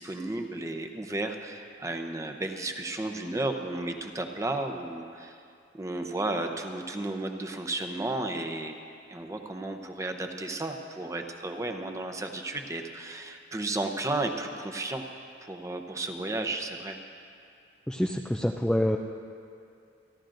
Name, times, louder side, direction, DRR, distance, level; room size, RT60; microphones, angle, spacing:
voice 1, 0.0-5.4 5.7-8.8 9.1-15.0 15.4-17.0, right 2 dB, 15° right, 4 dB, 0.7 m, -33 dB
voice 2, 17.9-19.0, equal, 5° left, 2 dB, 0.3 m, -26 dB
28.0 x 11.5 x 2.6 m, 2.5 s
head